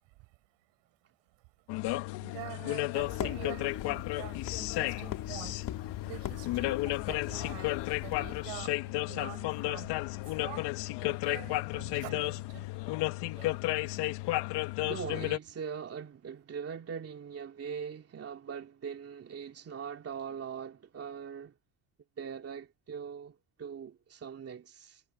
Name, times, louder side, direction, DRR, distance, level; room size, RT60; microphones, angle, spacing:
sound 1, 1.7-15.4, left 19 dB, 70° left, 1.7 m, -33 dB
voice 1, 2.1-5.7 6.0-10.7 11.0-12.7 13.3-14.1, right 25 dB, 75° right, 7.3 m, -47 dB
sound 2, 3.0-8.6, left 11 dB, 50° left, 2.4 m, -40 dB
voice 2, 14.8-21.5 22.2-25.0, right 7 dB, 35° right, 2.5 m, -41 dB
supercardioid pair, 100°, 42 cm